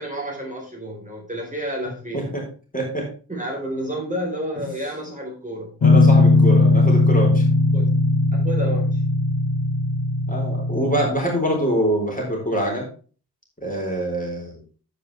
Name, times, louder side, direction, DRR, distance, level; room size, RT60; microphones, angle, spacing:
voice 1, 0.0-2.4 3.3-5.8 7.7-7.9 8.3-9.0, right 1 dB, 20° right, -2 dB, 4.1 m, -30 dB
voice 2, 2.7-3.1 5.8-7.4 10.3-12.9 13.6-14.6, right 1 dB, 20° left, -1 dB, 4.0 m, -24 dB
Guitar, 5.8-11.1, left 2 dB, 55° left, 1.2 m, -18 dB
9.8 x 8.2 x 3.4 m, 0.38 s
wide cardioid pair, 85°, 40 cm